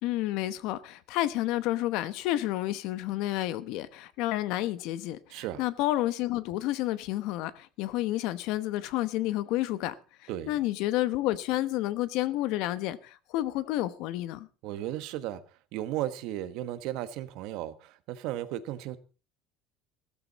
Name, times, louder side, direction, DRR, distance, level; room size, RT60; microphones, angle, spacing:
voice 1, 0.0-9.9 10.2-14.5, left 15 dB, 60° left, 1.0 m, -30 dB
voice 2, 5.3-5.6 10.3-10.5 14.6-15.4 15.7-19.0, right 13 dB, 60° right, 1.3 m, -35 dB
15.5 x 13.5 x 4.1 m
cardioid pair, 175°, 0 cm